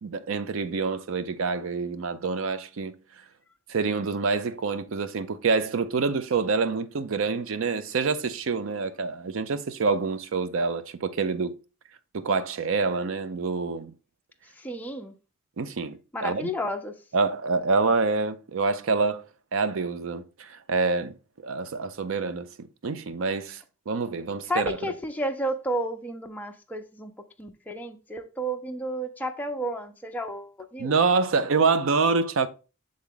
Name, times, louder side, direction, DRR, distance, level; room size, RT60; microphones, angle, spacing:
voice 1, 0.0-2.9 3.7-11.6 12.1-13.9 15.6-16.5 17.1-19.2 19.5-21.1 21.4-24.8 30.8-32.5, right 4 dB, 65° right, 0.5 m, -26 dB
voice 2, 14.5-15.1 16.1-16.9 24.5-27.1 27.4-30.9, right 1 dB, 10° left, 0.5 m, -32 dB
7.1 x 3.7 x 3.7 m
head